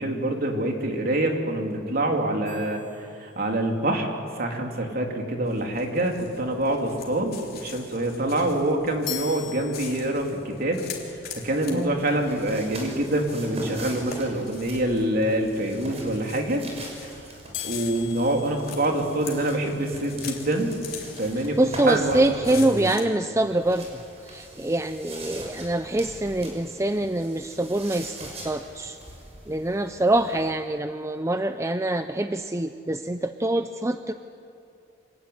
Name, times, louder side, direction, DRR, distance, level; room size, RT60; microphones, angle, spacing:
voice 1, 0.0-4.1 4.4-10.8 11.1-16.6 17.0-17.1 17.6-20.7 21.2-21.6 21.8-22.9, right 1 dB, 50° right, 2 dB, 3.3 m, -26 dB
sound 1, 2.5-3.8 9.1-10.5 17.5-19.7, left 12 dB, 70° left, 1.8 m, -40 dB
sound 2, 5.5-23.0, left 7 dB, 50° left, 3.5 m, -44 dB
voice 2, 11.7-12.1 21.4-23.9 24.2-29.0 29.5-34.1, right 1 dB, 15° right, 9 dB, 0.6 m, -25 dB
sound 3, 12.0-22.4 23.4-30.5, right 1 dB, 35° right, 6.2 m, -42 dB
26.5 x 18.0 x 9.6 m, 2.7 s
head